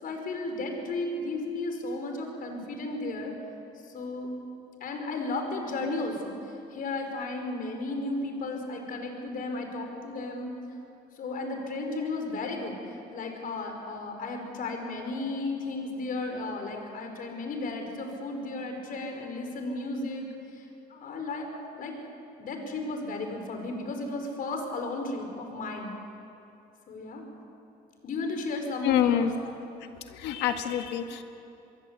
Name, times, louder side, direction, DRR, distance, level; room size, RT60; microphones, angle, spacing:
voice 1, 0.0-3.3 3.8-4.3 4.8-10.5 11.2-20.3 20.5-20.6 20.9-22.0 22.4-25.9 26.9-27.2 28.0-29.3, left 2 dB, 55° left, 4 dB, 5.3 m, -34 dB
voice 2, 28.8-29.3 30.0-31.2, left 10 dB, 85° left, 6 dB, 1.9 m, -27 dB
25.5 x 22.0 x 8.4 m, 2.7 s
cardioid pair, 110°, 17 cm